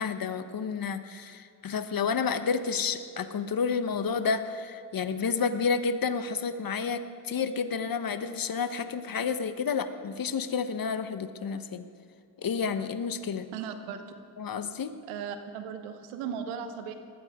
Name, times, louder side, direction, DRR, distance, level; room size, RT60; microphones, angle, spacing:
voice 1, 0.0-11.9 12.4-13.5 14.4-14.9, left 5 dB, 45° left, 10 dB, 1.2 m, -30 dB
voice 2, 13.5-14.1 15.0-16.9, right 7 dB, 90° right, 8 dB, 1.2 m, -37 dB
19.5 x 14.5 x 3.7 m, 2.4 s
supercardioid pair, 55°, 50 cm